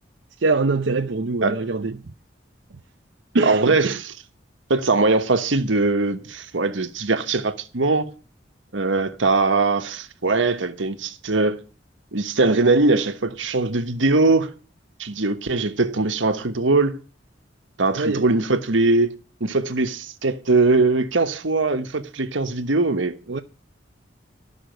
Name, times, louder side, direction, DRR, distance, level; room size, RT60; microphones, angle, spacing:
voice 1, 0.4-2.0 3.3-4.0 18.0-18.3 23.3-23.4, right 3 dB, 70° right, 0.7 m, -23 dB
voice 2, 3.4-4.1 4.7-8.1 8.7-11.6 12.1-14.5 15.0-17.0 17.8-19.1 19.4-23.2, right 3 dB, 85° right, 1.3 m, -21 dB
13.0 x 6.3 x 9.1 m
head